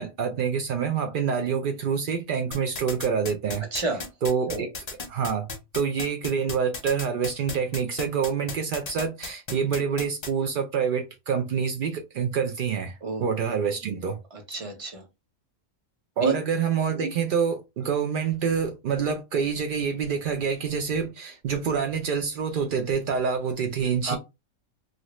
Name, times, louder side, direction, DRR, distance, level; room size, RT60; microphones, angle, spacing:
voice 1, 0.0-3.7 4.2-4.7 5.1-5.5 5.7-14.2 16.2-24.2, right 6 dB, 75° right, 0.4 m, -27 dB
sound 1, 2.5-10.3, left 4 dB, 35° left, 0.7 m, -34 dB
voice 2, 3.7-4.1 4.5-4.6 13.0-13.2 14.3-15.0 16.2-16.3 24.0-24.2, right 3 dB, 30° right, 0.8 m, -30 dB
2.8 x 2.5 x 3.0 m
omnidirectional pair, 1.4 m